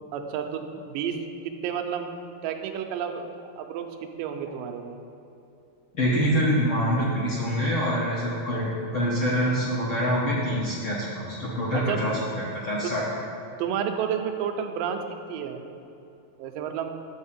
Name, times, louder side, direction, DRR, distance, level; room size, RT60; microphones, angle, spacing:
voice 1, 0.1-1.2 1.4-2.2 2.4-5.0 11.7-12.0 12.8-12.9 13.6-15.6 16.4-17.0, right 8 dB, 90° right, 5 dB, 2.3 m, -31 dB
voice 2, 5.9-12.1 12.6-13.0, equal, 60° left, -7 dB, 1.4 m, -25 dB
9.5 x 4.3 x 7.2 m, 2.8 s
omnidirectional pair, 3.9 m